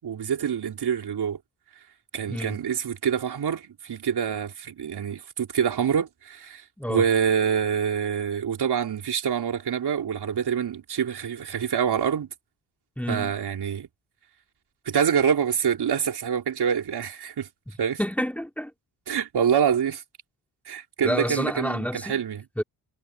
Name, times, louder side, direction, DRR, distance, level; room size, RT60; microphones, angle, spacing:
voice 1, 0.0-1.4 2.1-6.6 6.9-12.3 13.1-13.9 14.9-17.5 17.8-18.0 19.1-20.0 20.7-22.4, right 8 dB, 65° right, 3.9 m, -26 dB
voice 2, 2.3-2.6 6.8-7.1 13.0-13.3 18.0-18.7 21.0-22.2 22.6-22.7, equal, 5° left, 2.6 m, -29 dB
cardioid pair, 75°, 42 cm